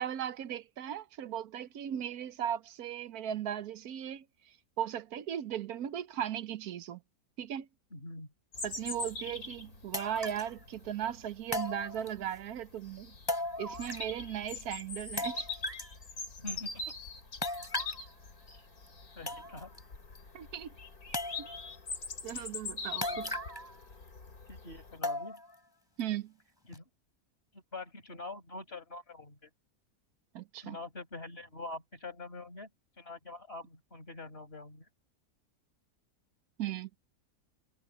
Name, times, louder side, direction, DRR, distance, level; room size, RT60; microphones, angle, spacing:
voice 1, 0.0-4.2 4.8-7.0 7.4-7.7 8.6-13.1 13.6-15.5 20.3-20.7 21.4-21.5 22.2-23.4 26.0-26.3 30.3-30.8 36.6-36.9, right 10 dB, 85° right, 1.3 m, -37 dB
voice 2, 7.9-8.3 16.4-17.0 18.5-18.6 19.2-19.7 22.3-22.5 23.1-23.3 24.5-25.4 26.7-26.8 27.5-29.5 30.6-32.7 33.0-34.9, left 2 dB, 40° left, 5.3 m, -45 dB
Bird vocalization bird call bird song, 8.5-25.0, left 3 dB, 80° left, 3.3 m, -43 dB
sound 1, 9.1-9.2 9.9-10.5 11.5-12.4 13.3-14.2 14.5-14.6 15.2-16.0 17.4-18.1 18.9-19.0 19.3-19.8 20.2-20.3 21.1-21.7 23.0-23.8 24.1-24.2 25.0-25.6 26.0-26.1 26.7-26.8, left 1 dB, 15° left, 4.0 m, -37 dB
omnidirectional pair, 1.6 m